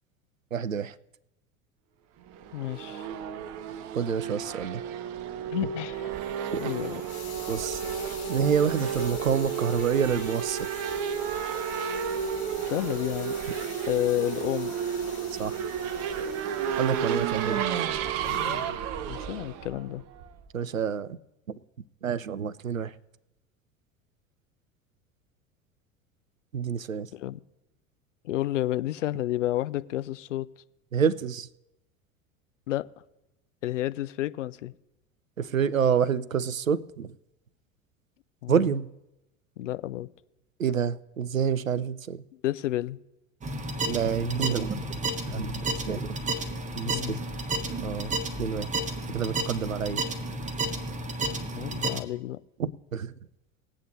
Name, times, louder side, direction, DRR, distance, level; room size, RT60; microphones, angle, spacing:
voice 1, 0.5-0.9 4.0-4.8 6.5-6.6 7.5-7.8 8.3-10.8 15.4-15.7 16.8-17.6 20.5-21.2 21.5-21.6 22.0-22.9 26.5-27.1 30.9-31.5 35.4-37.1 38.5-38.9 40.6-42.2 43.8-45.0 45.3-46.2 46.8-47.2 47.8-48.7 49.1-50.0 52.6-53.1, right 7 dB, 85° right, 0.6 m, -28 dB
Race car auto racing / Accelerating revving vroom, 2.3-20.5, right 8 dB, 45° right, 0.8 m, -32 dB
voice 2, 2.5-3.1 5.5-6.1 6.6-7.0 12.7-13.4 13.9-14.7 18.2-18.8 19.1-20.0 27.1-27.4 28.2-30.5 32.7-32.9 33.6-34.7 38.4-38.7 39.6-40.1 41.7-41.8 42.3-43.0 46.8-47.2 51.5-52.4, left 14 dB, 70° left, 0.6 m, -31 dB
Hiss, 5.9-17.7 18.2-18.6, left 7 dB, 50° left, 3.2 m, -46 dB
sound 1, 43.4-52.0, right 2 dB, 20° right, 1.1 m, -32 dB
20.5 x 8.5 x 2.7 m
figure-of-eight pair, 75°, 39 cm